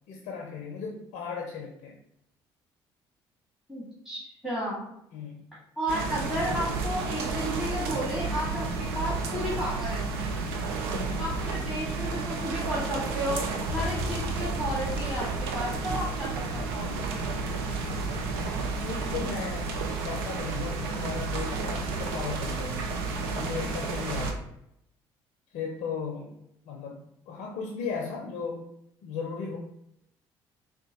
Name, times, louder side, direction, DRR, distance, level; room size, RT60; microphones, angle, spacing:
voice 1, 0.1-1.9 5.1-5.4 10.9-11.2 18.5-22.8 23.3-24.4 25.5-26.3 26.7-27.0 27.3-28.7 29.0-29.6, left 5 dB, 65° left, 1 dB, 0.5 m, -36 dB
voice 2, 3.7-4.9 5.8-10.1 11.2-13.4 13.7-17.1, equal, 5° right, -8 dB, 1.4 m, -33 dB
sound 1, 5.9-24.3, right 4 dB, 80° right, 0.4 m, -31 dB
sound 2, 13.7-19.2, left 2 dB, 20° left, 0.6 m, -40 dB
3.7 x 2.2 x 2.8 m, 0.78 s
hypercardioid pair, 55°, 13 cm